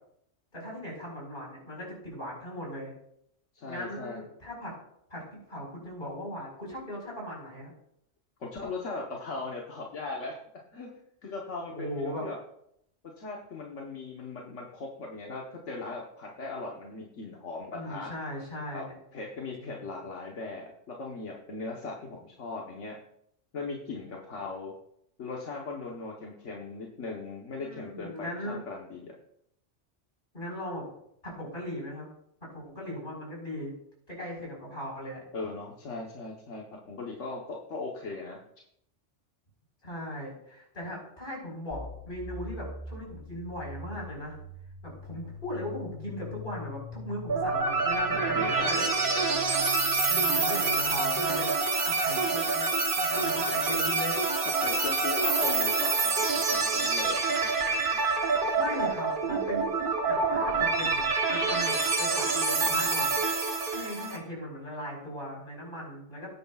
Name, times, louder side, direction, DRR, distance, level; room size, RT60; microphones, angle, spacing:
voice 1, 0.5-2.9 3.7-4.7 5.1-7.7 11.7-12.3 17.7-18.9 19.6-20.0 27.6-28.6 30.3-30.8 31.2-32.1 32.4-33.7 34.1-35.3 39.8-44.4 44.8-48.9 50.1-52.7 53.0-54.2 58.5-59.7 60.0-61.0 61.3-63.2 63.7-66.3, equal, 45° left, -2 dB, 5.0 m, -38 dB
voice 2, 3.5-4.2 8.4-10.3 10.7-12.4 13.2-18.1 18.7-18.9 19.1-23.0 23.5-24.7 25.2-29.2 35.3-38.4 48.1-49.4 54.6-57.4, left 3 dB, 80° left, -2 dB, 1.5 m, -39 dB
sound 1, 41.7-51.4, left 1 dB, 20° left, 3.0 m, -43 dB
sound 2, 47.3-64.2, right 4 dB, 45° right, 1.2 m, -27 dB
18.0 x 9.8 x 2.4 m, 0.73 s
omnidirectional pair, 1.2 m